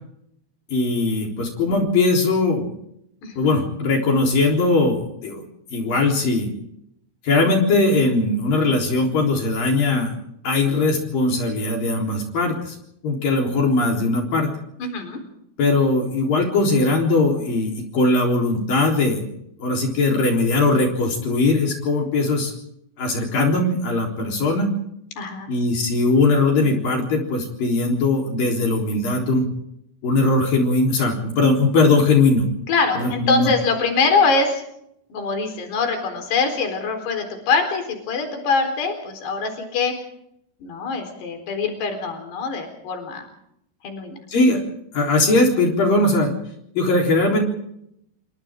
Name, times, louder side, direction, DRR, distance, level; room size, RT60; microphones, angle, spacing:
voice 1, 0.7-2.7 3.4-5.4 5.7-6.5 7.2-10.1 10.4-12.8 13.0-14.5 15.6-19.2 19.6-22.5 23.0-24.7 25.5-29.5 30.0-32.5 33.0-33.5 44.3-44.6 44.9-46.3 46.8-47.4, left 2 dB, 55° left, 0 dB, 5.4 m, -20 dB
voice 2, 3.2-3.5 14.8-15.2 25.2-25.5 32.7-34.6 35.1-39.9 40.6-43.3 43.8-44.2, left 4 dB, 70° left, 5 dB, 6.2 m, -23 dB
29.0 x 26.5 x 3.7 m, 0.74 s
omnidirectional pair, 4.9 m